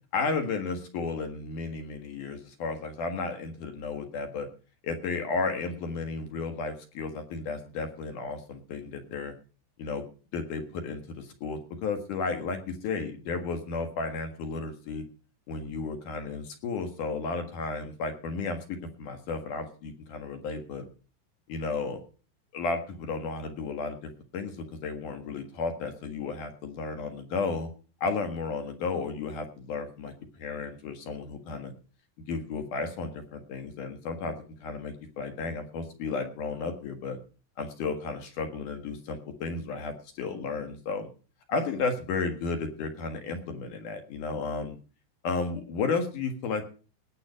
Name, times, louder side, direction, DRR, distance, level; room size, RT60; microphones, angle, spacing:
voice 1, 0.1-4.5 4.8-9.3 9.8-10.0 10.3-15.0 15.5-20.8 21.5-22.0 22.5-27.7 28.0-31.7 32.3-37.2 37.6-41.1 41.5-44.8 45.2-46.7, left 4 dB, 55° left, 7 dB, 2.5 m, -33 dB
19.0 x 7.7 x 5.1 m, 0.38 s
omnidirectional pair, 5.5 m